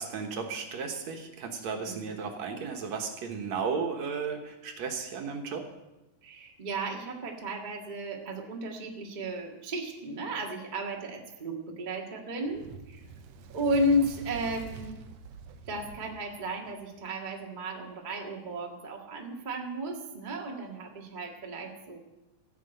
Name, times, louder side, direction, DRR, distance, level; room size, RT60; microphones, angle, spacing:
voice 1, 0.0-5.6, right 5 dB, 60° right, 4 dB, 2.2 m, -34 dB
voice 2, 1.8-2.2 6.2-13.0 13.5-15.0 15.7-22.0, equal, 40° right, 0 dB, 0.6 m, -33 dB
Fire, 12.4-17.0, right 5 dB, 75° right, 1.5 m, -46 dB
15.5 x 6.2 x 8.9 m, 1.0 s
omnidirectional pair, 4.0 m